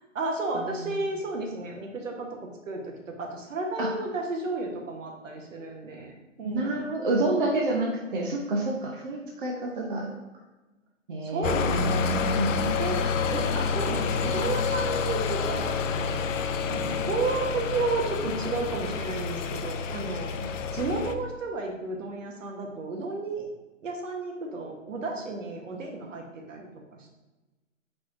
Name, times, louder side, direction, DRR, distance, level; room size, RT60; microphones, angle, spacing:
voice 1, 0.0-2.3 2.7-6.9 11.2-12.0 12.8-13.0 13.3-16.2 16.7-20.3 20.7-23.5 23.8-27.1, right 3 dB, 70° right, 1 dB, 1.1 m, -32 dB
voice 2, 6.4-10.1 11.1-12.7, right 2 dB, 40° right, -1 dB, 0.6 m, -28 dB
sound 1, 11.4-21.2, left 5 dB, 75° left, 0.5 m, -28 dB
4.4 x 4.2 x 2.5 m, 1.1 s
hypercardioid pair, 155°, 39 cm